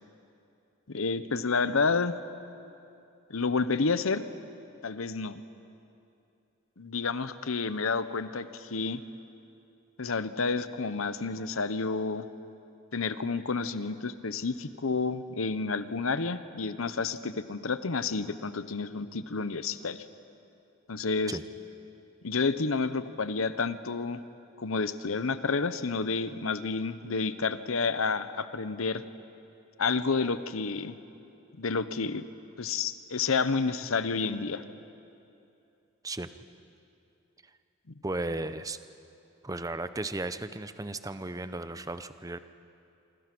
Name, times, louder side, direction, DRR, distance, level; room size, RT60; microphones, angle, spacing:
voice 1, 0.9-2.2 3.3-4.2 4.8-5.4 6.8-9.0 10.0-12.3 12.9-20.0 20.9-21.4 22.2-24.2 24.6-29.0 29.8-30.9 31.6-32.2 32.6-34.6, left 4 dB, 80° left, 12 dB, 0.9 m, -30 dB
voice 2, 38.0-38.8 39.4-42.4, right 2 dB, 15° right, 11 dB, 0.7 m, -35 dB
26.5 x 25.5 x 6.1 m, 2.7 s
head